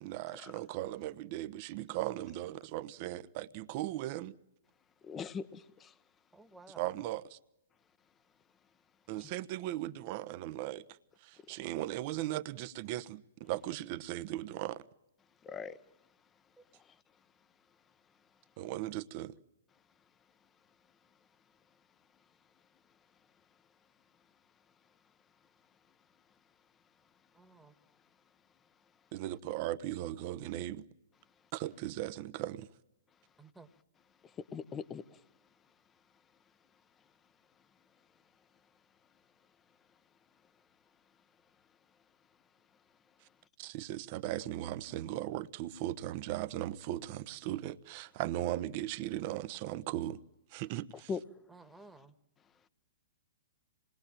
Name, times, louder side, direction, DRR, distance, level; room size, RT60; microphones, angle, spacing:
voice 1, 0.0-4.3 6.7-7.4 9.1-10.8 11.2-14.8 18.6-19.3 29.1-30.8 31.5-32.7 43.6-50.2 50.5-51.1, right 14 dB, 45° right, 1.0 m, -38 dB
voice 2, 5.0-5.9 15.4-15.8 34.4-35.0 51.1-51.2, left 6 dB, 20° left, 1.1 m, -40 dB
voice 3, 6.3-6.8 27.4-27.7 33.4-33.7 51.5-52.1, right 3 dB, 5° right, 1.6 m, -55 dB
26.5 x 21.0 x 8.9 m
hypercardioid pair, 115°, 0 cm